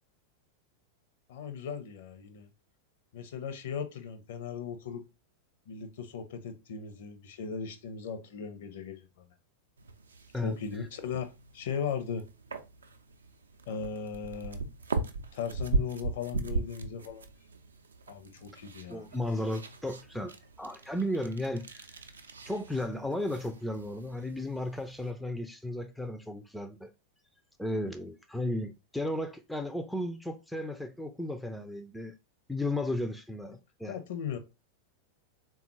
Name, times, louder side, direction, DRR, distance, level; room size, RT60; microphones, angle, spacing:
voice 1, 1.3-2.5 3.1-5.0 5.7-9.1 10.4-12.2 13.7-14.6 15.3-17.3 18.1-19.1 33.8-34.4, left 6 dB, 55° left, 0.6 m, -37 dB
sound 1, 9.8-25.1, right 3 dB, 70° right, 0.4 m, -39 dB
voice 2, 10.3-10.9 18.9-21.9 22.5-26.9 27.6-32.1 32.5-34.0, left 1 dB, ahead, 0.3 m, -34 dB
3.6 x 2.3 x 2.9 m
figure-of-eight pair, 90°, 0 cm